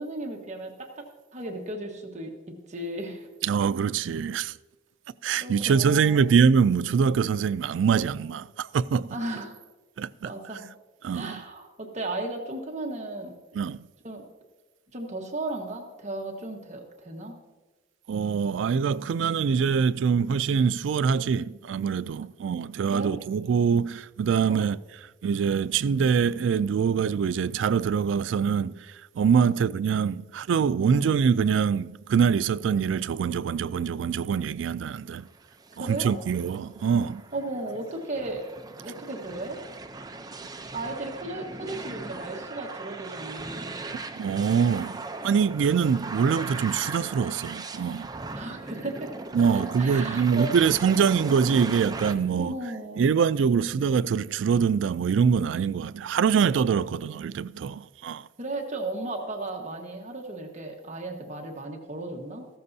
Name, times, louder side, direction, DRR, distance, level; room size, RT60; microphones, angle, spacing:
voice 1, 0.0-2.3 2.7-3.3 5.4-6.3 9.1-9.6 10.2-10.7 11.1-13.4 14.0-14.2 14.9-17.4 22.9-23.2 24.4-24.7 29.4-29.6 30.8-31.1 35.8-36.1 37.3-38.4 38.8-39.6 40.7-43.8 48.3-49.1 49.5-50.6 52.4-53.1 58.4-62.5, right 2 dB, 40° right, 1.4 m, -35 dB
voice 2, 3.4-4.5 5.2-9.2 10.0-10.3 11.0-11.4 13.5-13.8 18.1-24.8 25.2-35.3 35.8-37.2 44.2-45.0 45.2-48.1 49.3-52.6 53.0-58.3, right 6 dB, 90° right, 0.3 m, -24 dB
sound 1, 35.3-52.1, right 3 dB, 20° right, 0.6 m, -39 dB
14.5 x 13.0 x 2.7 m
head